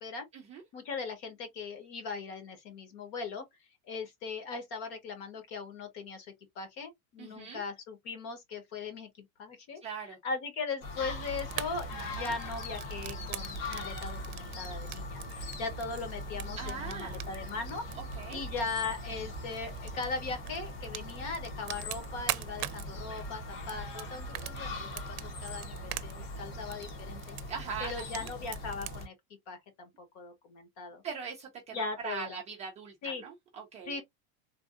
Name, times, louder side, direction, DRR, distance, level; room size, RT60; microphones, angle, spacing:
voice 1, 0.7-3.5 3.8-9.8 10.1-15.2 15.6-17.9 18.3-27.4 27.8-29.1 29.5-31.0 31.7-32.4 33.0-33.2 33.9-34.0, left 4 dB, 45° left, 1.2 m, -39 dB
voice 2, 7.2-7.6 9.8-10.2 12.0-12.3 16.6-17.2 18.0-18.4 27.5-28.3 31.0-34.0, right 6 dB, 15° right, 0.4 m, -41 dB
sound 1, 10.8-29.1, left 1 dB, 70° left, 1.7 m, -41 dB
Fire, 11.0-29.0, right 14 dB, 80° right, 0.6 m, -44 dB
3.4 x 2.6 x 2.5 m
supercardioid pair, 160°, 42 cm